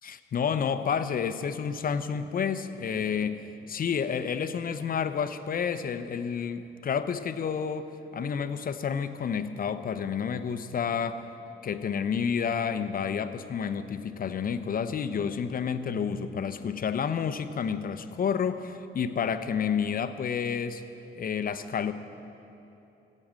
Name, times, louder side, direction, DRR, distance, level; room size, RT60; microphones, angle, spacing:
voice 1, 0.0-11.2 11.6-20.8 21.1-21.9, left 7 dB, 45° left, 10 dB, 0.7 m, -30 dB
14.0 x 8.6 x 7.5 m, 2.9 s
cardioid pair, 90°, 20 cm